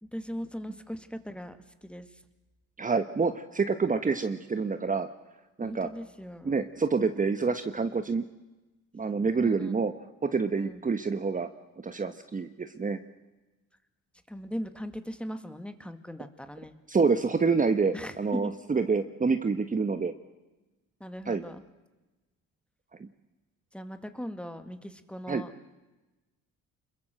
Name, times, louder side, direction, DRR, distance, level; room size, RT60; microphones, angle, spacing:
voice 1, 0.0-2.1 5.6-6.5 9.4-9.7 10.6-10.8 14.3-16.8 17.9-18.5 21.0-21.6 23.7-25.5, equal, 5° left, 9 dB, 2.1 m, -39 dB
voice 2, 2.8-5.1 5.6-5.9 6.4-8.2 8.9-9.9 10.2-11.5 11.8-13.0 16.9-20.1 21.3-21.4 23.0-23.1 25.3-25.4, right 4 dB, 25° right, 9 dB, 1.2 m, -27 dB
26.5 x 22.0 x 7.8 m, 1.1 s
cardioid pair, 90°, 30 cm